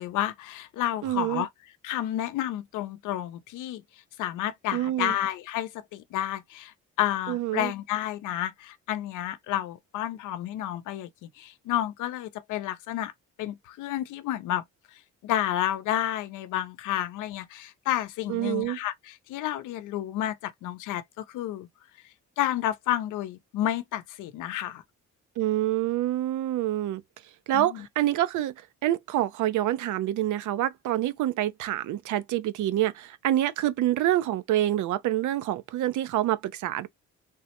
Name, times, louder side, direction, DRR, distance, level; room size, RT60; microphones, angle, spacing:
voice 1, 0.0-1.5 1.8-3.8 4.2-13.1 13.4-14.6 15.2-21.7 22.4-24.8 27.5-27.8, left 12 dB, 85° left, 0.6 m, -30 dB
voice 2, 1.0-1.4 4.7-5.1 7.3-7.7 18.3-18.8 25.4-27.0 27.5-28.5 28.8-36.9, right 13 dB, 80° right, 0.5 m, -27 dB
3.5 x 2.1 x 2.8 m
cardioid pair, 90°, 30 cm